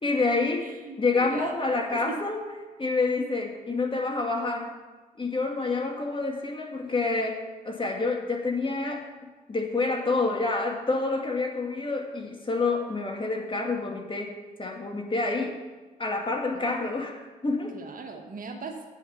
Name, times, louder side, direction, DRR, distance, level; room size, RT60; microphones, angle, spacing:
voice 1, 0.0-0.7 1.0-2.4 2.8-4.8 5.2-9.1 9.5-15.6 16.0-17.8, left 3 dB, 25° left, 2 dB, 2.4 m, -28 dB
voice 2, 0.6-2.2 16.5-17.0 17.7-18.8, right 4 dB, 50° right, 3 dB, 1.8 m, -40 dB
10.0 x 9.1 x 6.0 m, 1.2 s
hypercardioid pair, 45°, 18 cm